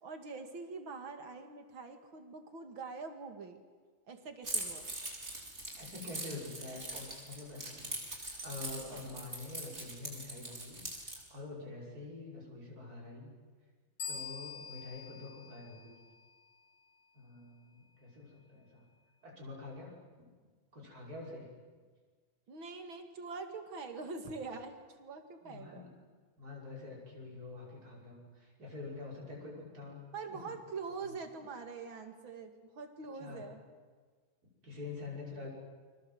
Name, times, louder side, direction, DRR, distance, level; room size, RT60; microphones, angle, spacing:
voice 1, 0.0-3.6 4.1-4.9 22.5-25.9 30.1-33.6, right 4 dB, 90° right, 6 dB, 3.0 m, -44 dB
Keys jangling, 4.4-11.2, right 1 dB, 35° right, 4.9 m, -42 dB
voice 2, 5.8-13.3 14.1-16.0 17.1-18.8 19.2-20.0 20.7-21.5 25.4-25.9 26.4-30.0 30.3-30.4 33.2-33.4 34.6-35.5, left 3 dB, 50° right, -3 dB, 6.6 m, -46 dB
sound 1, 14.0-16.5, left 6 dB, 55° left, 2.4 m, -45 dB
29.0 x 24.0 x 8.0 m, 1.5 s
omnidirectional pair, 2.1 m